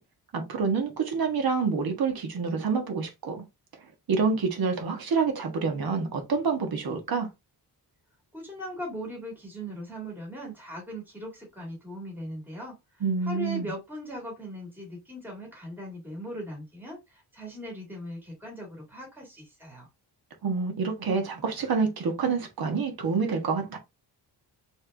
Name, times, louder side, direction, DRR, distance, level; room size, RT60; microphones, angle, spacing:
voice 1, 0.3-3.4 4.1-7.3 13.0-13.7 20.4-23.8, right 5 dB, 60° right, 1.6 m, -27 dB
voice 2, 8.3-12.8 13.2-19.9, equal, 5° right, 1.9 m, -39 dB
4.3 x 3.5 x 3.4 m
wide cardioid pair, 170°, 41 cm